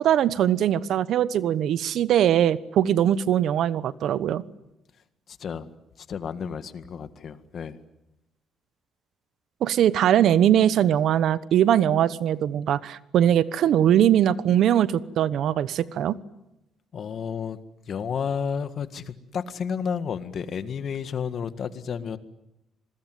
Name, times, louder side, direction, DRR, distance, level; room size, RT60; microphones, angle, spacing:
voice 1, 0.0-4.4 9.6-16.2, right 10 dB, 75° right, 16 dB, 1.0 m, -21 dB
voice 2, 5.3-5.7 6.1-7.8 16.9-17.6 17.9-22.2, left 6 dB, 60° left, 11 dB, 1.8 m, -31 dB
27.0 x 21.5 x 9.4 m, 0.89 s
cardioid pair, 90°, 0 cm